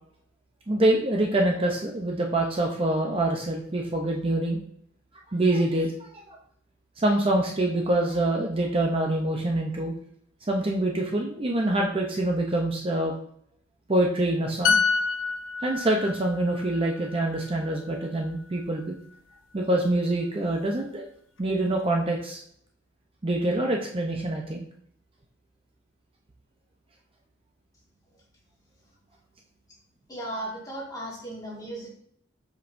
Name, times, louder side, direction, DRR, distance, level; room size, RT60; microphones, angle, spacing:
voice 1, 0.7-4.6 5.3-6.1 7.0-9.9 10.5-13.1 13.9-14.8 15.6-18.9 19.5-21.1 21.4-22.4 23.2-24.6, right 1 dB, 30° right, 0 dB, 0.6 m, -25 dB
sound 1, 14.6-18.2 18.6-18.8, left 5 dB, 70° left, 0.4 m, -28 dB
voice 2, 30.1-31.9, right 1 dB, 20° left, -4 dB, 1.9 m, -36 dB
7.2 x 5.2 x 2.6 m, 0.66 s
head